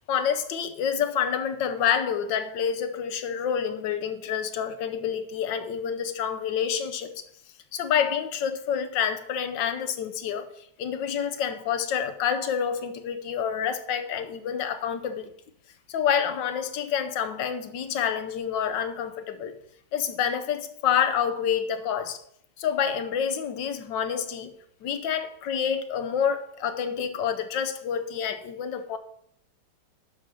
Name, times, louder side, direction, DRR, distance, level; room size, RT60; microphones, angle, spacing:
voice 1, 0.1-7.2 7.7-15.3 15.9-19.6 19.9-22.2 22.6-24.5 24.8-29.0, left 8 dB, 75° left, 1.5 m, -28 dB
11.5 x 4.2 x 6.2 m
omnidirectional pair, 2.0 m